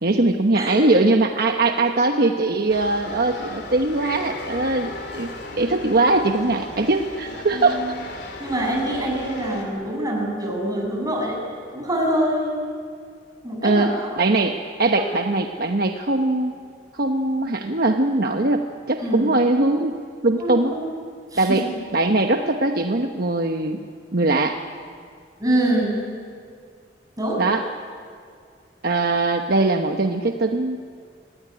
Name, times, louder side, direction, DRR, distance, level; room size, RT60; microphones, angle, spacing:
voice 1, 0.0-5.3 5.6-7.8 13.6-16.5 16.9-20.0 20.2-20.7 21.4-21.6 21.9-23.8 24.1-24.6 27.4-27.6 28.8-30.9, right 2 dB, 60° right, 4 dB, 1.1 m, -21 dB
sound 1, 2.7-9.6, left 2 dB, 65° left, 3.5 m, -36 dB
voice 2, 7.5-7.9 8.4-11.4 11.7-12.6 13.4-14.1 15.0-15.1 19.0-19.3 20.4-20.8 21.3-21.7 25.4-26.0 27.2-27.4, right 1 dB, 20° right, -1 dB, 7.2 m, -25 dB
25.5 x 18.0 x 10.0 m, 2.2 s
head